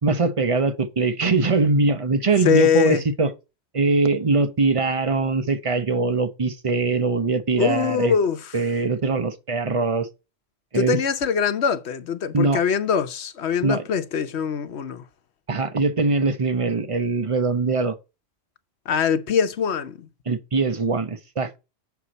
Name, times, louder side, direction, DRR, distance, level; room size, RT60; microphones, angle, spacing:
voice 1, 0.0-3.3 3.7-8.1 8.5-10.1 10.7-11.0 12.3-12.6 13.6-13.8 15.5-17.9 20.3-21.5, right 3 dB, 30° right, 0.8 m, -22 dB
voice 2, 2.4-3.0 7.6-8.6 10.7-15.0 18.9-20.1, left 7 dB, 65° left, 1.1 m, -22 dB
8.3 x 6.4 x 4.1 m
omnidirectional pair, 1.2 m